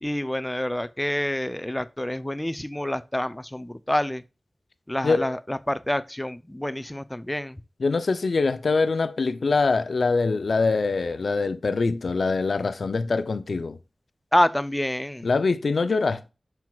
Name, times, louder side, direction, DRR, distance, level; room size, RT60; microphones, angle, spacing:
voice 1, 0.0-4.2 4.9-7.6 14.3-15.3, left 1 dB, 10° left, 0.4 m, -27 dB
voice 2, 7.8-13.8 15.2-16.3, left 4 dB, 80° left, 0.4 m, -24 dB
11.5 x 4.5 x 2.3 m
wide cardioid pair, 90°, 0 cm